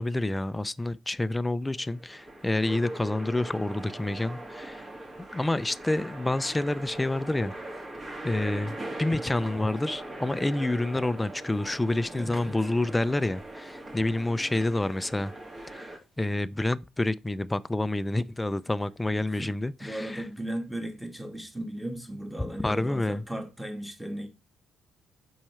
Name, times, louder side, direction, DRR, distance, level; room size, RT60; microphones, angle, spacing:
voice 1, 0.0-4.8 5.3-7.5 8.2-15.3 15.7-20.2 22.6-23.2, left 2 dB, 15° left, 0.5 m, -28 dB
sound 1, 1.6-16.0, right 1 dB, 30° right, 2.2 m, -41 dB
voice 2, 12.1-12.6 19.3-19.5 19.8-24.3, right 1 dB, 5° right, 2.0 m, -36 dB
5.9 x 4.8 x 5.7 m
cardioid pair, 90°, 0 cm